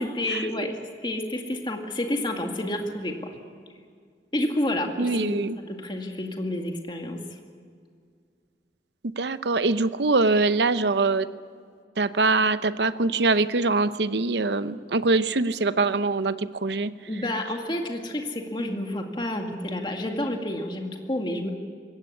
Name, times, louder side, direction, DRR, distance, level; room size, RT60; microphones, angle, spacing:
voice 1, 0.0-3.2 4.3-7.2 17.1-21.5, left 1 dB, 25° left, 3 dB, 2.1 m, -29 dB
voice 2, 5.0-5.6 9.2-11.3 12.0-16.9, right 3 dB, 70° right, 13 dB, 0.8 m, -23 dB
22.0 x 17.5 x 8.5 m, 2.1 s
head